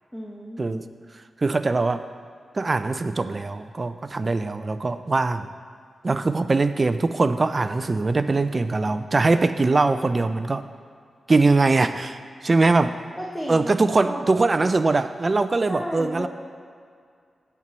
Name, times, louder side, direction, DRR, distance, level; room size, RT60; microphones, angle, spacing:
voice 1, 0.1-0.8 13.2-14.3 15.7-16.3, equal, ahead, -3 dB, 1.0 m, -33 dB
voice 2, 1.4-2.0 2.5-5.5 6.0-10.7 11.3-12.2 12.4-12.9 13.5-16.3, right 3 dB, 40° right, 11 dB, 0.4 m, -22 dB
8.8 x 4.5 x 6.1 m, 2.2 s
cardioid pair, 70°, 0 cm